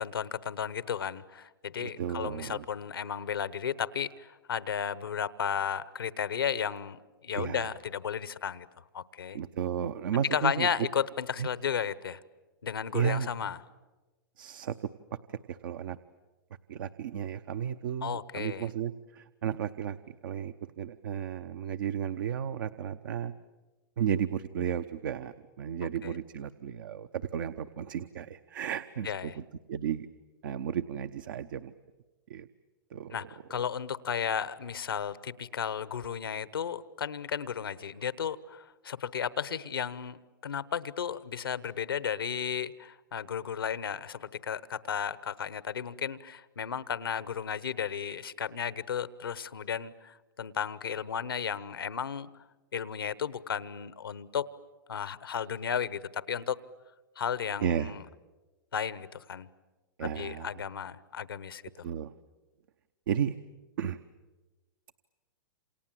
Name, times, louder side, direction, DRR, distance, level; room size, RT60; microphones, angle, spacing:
voice 1, 0.0-8.7 8.9-9.4 10.3-12.2 12.6-13.6 18.0-18.7 26.0-26.1 29.0-29.4 33.1-52.3 52.7-54.5 54.9-56.6 57.2-58.0 58.7-59.5 60.0-61.6, left 7 dB, 85° left, 17 dB, 1.1 m, -34 dB
voice 2, 1.8-2.6 7.3-7.7 9.3-10.7 11.4-11.5 12.9-13.3 14.4-14.9 15.3-16.0 16.7-23.3 24.0-30.1 30.4-31.7 32.3-32.5 32.9-33.3 57.6-57.9 60.0-60.6 61.8-62.1 63.1-63.4 63.8-64.0, right 8 dB, 70° right, 10 dB, 0.8 m, -33 dB
28.0 x 28.0 x 7.7 m, 1.2 s
hypercardioid pair, 115°, 12 cm